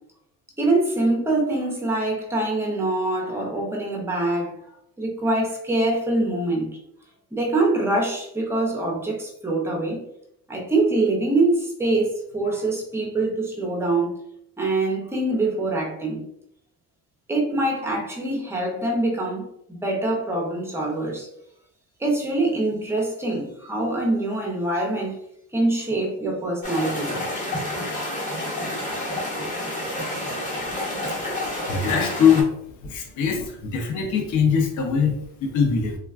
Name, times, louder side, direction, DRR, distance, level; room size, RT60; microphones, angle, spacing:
voice 1, 0.6-4.5 5.0-6.8 7.3-10.1 10.5-14.2 14.6-16.3 17.3-21.3 22.0-25.2 25.5-27.1, right 2 dB, 10° right, 0.4 m, -24 dB
sound 1, 26.6-32.4, left 1 dB, 20° left, 0.8 m, -29 dB
voice 2, 31.2-32.5 32.8-36.0, left 6 dB, 60° left, 0.6 m, -22 dB
3.4 x 2.1 x 2.3 m
cardioid pair, 170°, 35 cm